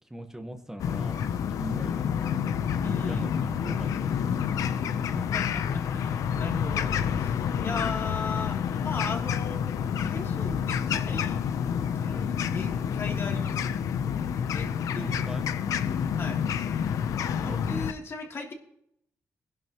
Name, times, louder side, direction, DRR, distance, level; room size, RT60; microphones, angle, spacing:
voice 1, 0.1-2.3 3.0-3.9 4.3-4.4 14.9-15.4 17.4-17.8, right 1 dB, 10° right, 5 dB, 1.3 m, -40 dB
sound 1, 0.8-17.9, left 8 dB, 90° left, 0.7 m, -28 dB
voice 2, 2.8-3.5 5.1-9.6 10.0-11.4 11.9-13.8 14.5-14.7 14.9-15.1 16.2-16.4 17.4-18.5, left 3 dB, 50° left, 0 dB, 3.1 m, -37 dB
21.5 x 11.0 x 3.1 m, 0.75 s
cardioid pair, 95°, 6 cm